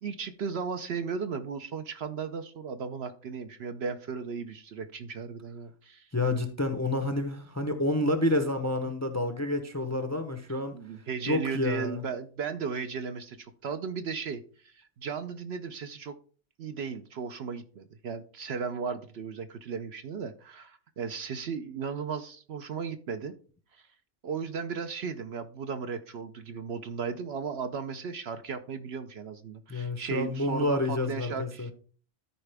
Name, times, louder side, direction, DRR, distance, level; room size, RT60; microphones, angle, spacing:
voice 1, 0.0-6.1 10.7-16.1 16.6-23.3 23.7-23.9 24.2-31.7, right 5 dB, 60° right, 9 dB, 0.8 m, -36 dB
voice 2, 6.1-10.8 11.3-12.0 29.7-31.7, left 2 dB, 15° left, 8 dB, 0.6 m, -29 dB
13.0 x 4.8 x 3.4 m, 0.41 s
omnidirectional pair, 1.4 m